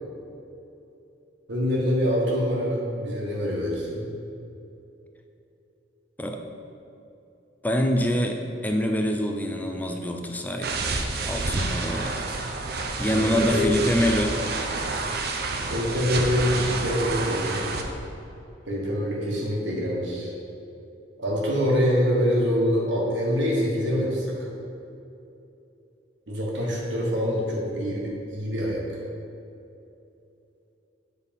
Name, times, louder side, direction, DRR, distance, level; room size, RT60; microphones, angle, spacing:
voice 1, 1.5-4.0 13.1-13.9 15.7-17.7 18.7-20.3 21.2-24.4 26.3-28.8, equal, 80° right, -3 dB, 1.4 m, -25 dB
voice 2, 7.6-10.8 11.2-12.4 13.0-14.4, equal, 10° left, 4 dB, 0.4 m, -25 dB
sound 1, 10.6-17.8, right 3 dB, 55° right, 0.6 m, -29 dB
7.3 x 4.2 x 5.3 m, 2.8 s
head